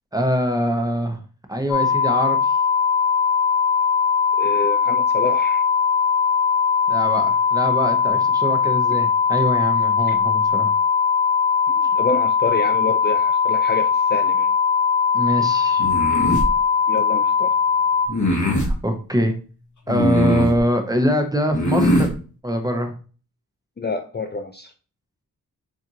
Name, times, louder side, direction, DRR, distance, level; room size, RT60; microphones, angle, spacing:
voice 1, 0.1-1.2 1.5-2.5 6.9-10.7 15.1-15.9 18.4-19.3 19.9-22.1 22.4-22.9, equal, 10° right, 4 dB, 0.8 m, -23 dB
sound 1, 1.7-18.1, left 6 dB, 90° left, 0.8 m, -19 dB
voice 2, 4.4-5.6 10.1-10.2 11.7-14.5 16.9-17.5 23.8-24.7, left 3 dB, 30° left, 4 dB, 0.4 m, -27 dB
sound 2, 15.8-16.5 18.1-18.7 19.9-20.6 21.5-22.1, left 1 dB, 55° left, 1.2 m, -20 dB
7.2 x 2.5 x 2.8 m, 0.38 s
wide cardioid pair, 85°, 36 cm